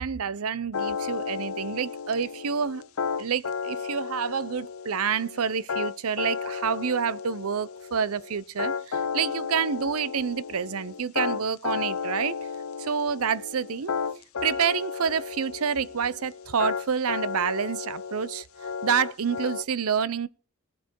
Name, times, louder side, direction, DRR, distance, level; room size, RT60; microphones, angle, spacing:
voice 1, 0.0-2.8 3.2-12.4 12.8-13.9 14.4-20.3, right 6 dB, 75° right, 0.6 m, -28 dB
sound 1, 0.7-19.6, left 5 dB, 70° left, 0.7 m, -33 dB
19.0 x 8.3 x 4.6 m
head